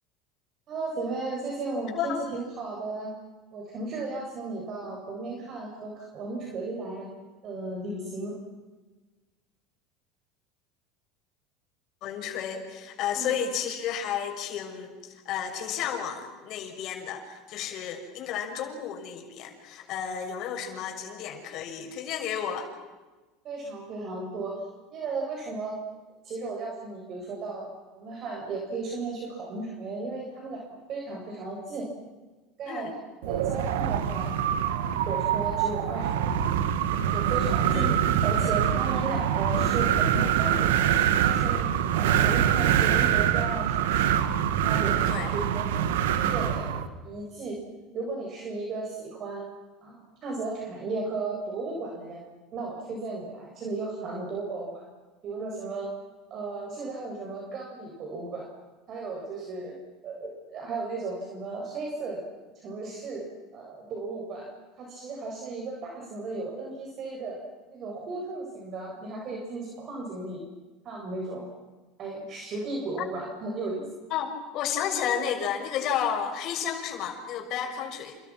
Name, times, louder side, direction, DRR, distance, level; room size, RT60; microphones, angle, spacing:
voice 1, 0.7-3.1 3.5-7.1 7.4-8.4 13.1-13.3 23.4-24.6 24.9-25.8 26.2-27.6 27.9-30.6 30.9-31.9 32.6-32.9 33.3-34.3 34.6-36.5 37.1-37.9 38.2-40.7 41.1-44.2 44.6-45.6 46.2-47.6 47.9-49.5 49.8-50.0 50.2-52.2 52.5-54.8 55.2-55.9 56.3-58.5 58.9-59.7 60.0-62.3 62.5-63.3 63.5-64.5 64.8-67.4 67.7-70.4 70.8-71.5 72.0-73.9, right 3 dB, 45° right, -1 dB, 7.8 m, -35 dB
voice 2, 12.0-22.7 32.7-32.9 37.7-38.0 38.9-39.0 45.1-45.3 74.1-78.2, left 8 dB, 55° left, 4 dB, 6.4 m, -32 dB
Wind, 33.2-46.9, right 9 dB, 90° right, 2.0 m, -24 dB
30.0 x 29.0 x 6.2 m, 1.2 s
supercardioid pair, 115°, 0 cm